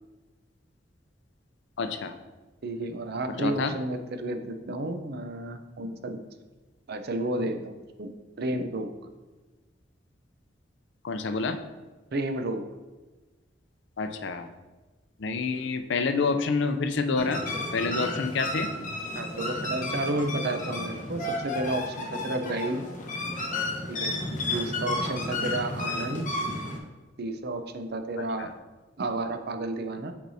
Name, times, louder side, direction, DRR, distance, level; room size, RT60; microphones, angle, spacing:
voice 1, 1.8-2.1 3.4-3.7 11.0-11.6 14.0-14.5 15.2-17.4 17.7-18.7 28.2-28.5, left 4 dB, 65° left, 8 dB, 0.5 m, -28 dB
voice 2, 2.6-6.2 6.9-8.1 8.4-8.9 12.1-12.6 19.1-22.8 23.9-24.1 24.5-26.3 27.2-28.5 29.0-30.1, right 2 dB, 55° right, 7 dB, 0.6 m, -31 dB
sound 1, 17.2-26.8, left 2 dB, 45° left, 1.0 m, -32 dB
8.5 x 4.6 x 2.7 m, 1.2 s
head